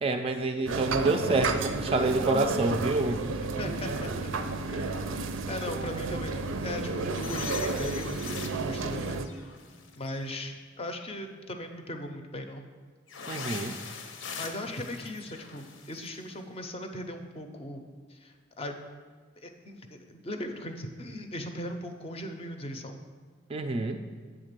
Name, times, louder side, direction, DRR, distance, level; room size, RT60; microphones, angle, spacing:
voice 1, 0.0-3.2 13.3-13.7 23.5-24.0, right 2 dB, 30° right, 6 dB, 0.3 m, -27 dB
sound 1, 0.7-9.3, right 3 dB, 85° right, 0.5 m, -32 dB
voice 2, 3.4-4.3 4.7-9.2 10.0-12.6 14.4-17.8 18.1-18.7 19.4-23.0, left 1 dB, 30° left, 5 dB, 0.5 m, -38 dB
sound 2, 7.1-10.2 13.1-16.2, left 5 dB, 75° left, 0.7 m, -42 dB
7.9 x 3.7 x 6.6 m, 1.5 s
head